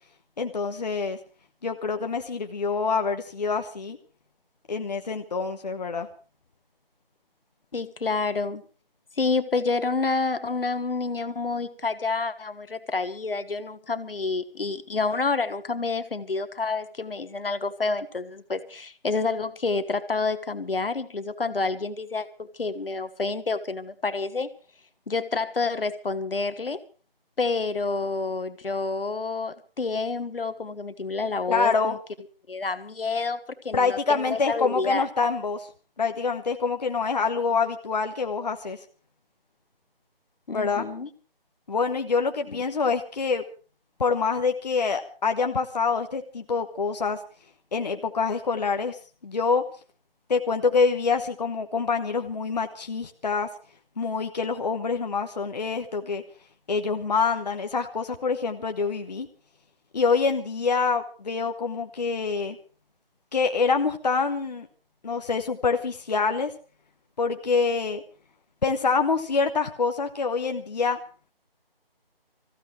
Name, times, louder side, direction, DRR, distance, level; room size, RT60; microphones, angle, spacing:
voice 1, 0.4-1.2 1.6-4.0 4.7-6.1 31.5-32.0 33.7-35.7 36.0-38.8 40.5-40.8 41.7-43.4 44.0-47.2 47.7-49.6 50.3-53.5 54.0-56.2 56.7-59.3 59.9-62.6 63.3-64.7 65.0-66.5 67.2-68.0 68.6-71.0, left 5 dB, 45° left, 5 dB, 1.1 m, -26 dB
voice 2, 7.7-8.6 9.2-24.5 25.1-26.8 27.4-32.0 32.5-33.4 33.6-35.1 40.5-41.1 42.5-42.6, left 4 dB, 70° left, 12 dB, 1.5 m, -28 dB
25.0 x 15.0 x 3.3 m, 0.37 s
figure-of-eight pair, 165°, 30 cm